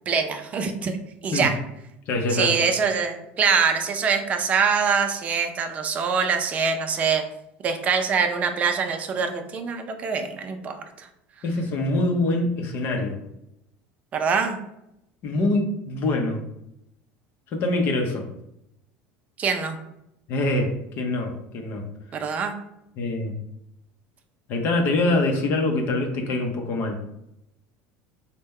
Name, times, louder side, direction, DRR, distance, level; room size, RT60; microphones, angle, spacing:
voice 1, 0.1-1.0 1.2-1.5 2.3-7.2 7.6-11.1 14.1-14.6 19.4-19.8 22.1-22.5, right 5 dB, 30° right, 6 dB, 0.5 m, -24 dB
voice 2, 2.1-2.7 11.4-13.2 15.2-16.4 17.5-18.3 20.3-21.9 23.0-23.4 24.5-27.0, left 2 dB, 45° left, 3 dB, 0.7 m, -24 dB
4.1 x 2.2 x 3.6 m, 0.83 s
cardioid pair, 140°, 5 cm